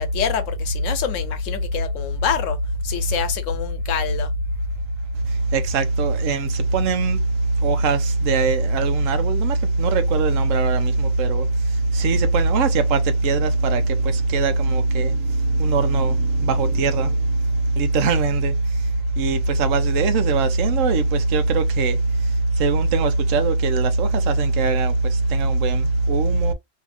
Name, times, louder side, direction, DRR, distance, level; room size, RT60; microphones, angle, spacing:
voice 1, 0.0-4.3, left 9 dB, 90° left, 1.1 m, -26 dB
voice 2, 5.5-7.2 7.6-11.5 11.9-17.3 17.7-18.5 19.2-22.0 22.6-26.5, right 3 dB, 90° right, 1.1 m, -20 dB
2.8 x 2.6 x 3.5 m
omnidirectional pair, 1.3 m